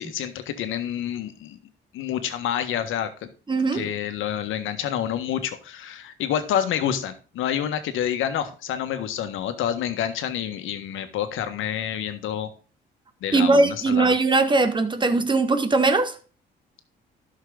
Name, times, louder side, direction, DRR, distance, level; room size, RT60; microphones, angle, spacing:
voice 1, 0.0-1.6 1.9-3.3 3.7-12.5 13.2-14.1, left 10 dB, 85° left, 1.5 m, -28 dB
voice 2, 3.5-3.9 13.3-16.1, right 3 dB, 25° right, 1.6 m, -20 dB
11.5 x 6.5 x 3.9 m
cardioid pair, 90°, 20 cm